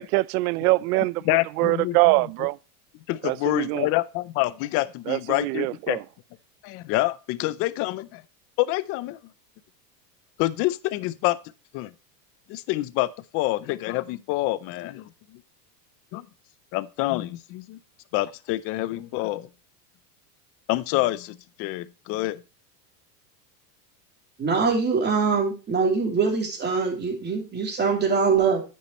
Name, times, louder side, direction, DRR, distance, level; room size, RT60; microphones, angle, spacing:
voice 1, 0.0-1.2 1.6-2.6 3.2-3.9 5.1-6.0, right 21 dB, 65° right, 0.5 m, -23 dB
voice 2, 1.2-2.1 3.1-6.0 6.6-8.2 8.6-9.2 10.4-11.4 11.7-11.9 12.5-13.1 13.3-15.1 16.1-16.3 16.7-17.8 18.1-19.5 20.7-22.4, left 18 dB, 30° left, 0.4 m, -27 dB
voice 3, 24.4-28.6, right 5 dB, 20° right, 2.9 m, -23 dB
9.7 x 8.5 x 2.9 m
supercardioid pair, 145°, 50 cm